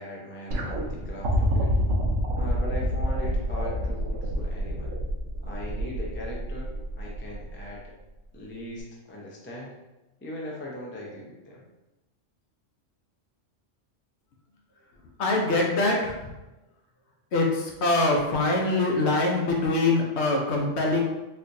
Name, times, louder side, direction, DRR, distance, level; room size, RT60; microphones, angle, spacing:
voice 1, 0.0-1.7 2.4-4.9 5.4-7.9 8.3-9.8 10.2-11.6, left 1 dB, 20° left, -3 dB, 0.3 m, -39 dB
sound 1, 0.5-7.7 8.8-8.9, right 1 dB, 85° right, 1.0 m, -29 dB
voice 2, 15.2-16.2 17.3-21.0, left 2 dB, 65° left, 0 dB, 0.9 m, -23 dB
4.2 x 2.4 x 2.6 m, 1.0 s
omnidirectional pair, 1.3 m